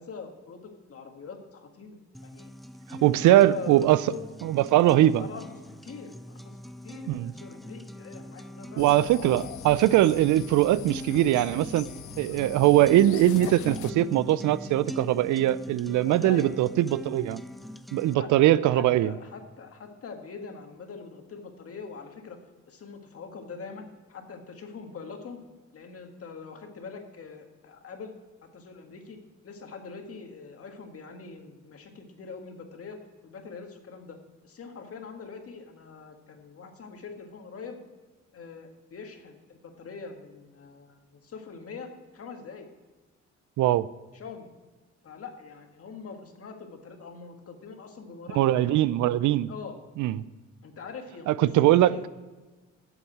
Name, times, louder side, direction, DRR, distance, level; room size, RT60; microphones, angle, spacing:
voice 1, 0.0-2.5 3.0-4.2 5.0-8.9 16.0-16.5 18.1-22.4 22.7-25.4 25.7-28.1 28.4-34.2 34.4-37.8 38.3-42.7 44.1-44.5 45.0-48.8 49.5-49.8 50.6-52.1, left 5 dB, 50° left, 4 dB, 1.7 m, -43 dB
sound 1, 2.1-18.1, equal, ahead, 0.3 m, -42 dB
voice 2, 3.0-4.0 4.4-5.2 7.1-7.3 8.8-11.9 12.2-17.4 17.9-19.1 43.6-43.9 48.4-49.5 50.0-50.2 51.3-52.1, right 14 dB, 80° right, 18 dB, 0.5 m, -21 dB
sound 2, 8.8-13.9, left 13 dB, 75° left, 0.5 m, -42 dB
8.2 x 7.1 x 8.6 m, 1.2 s
cardioid pair, 90°, 30 cm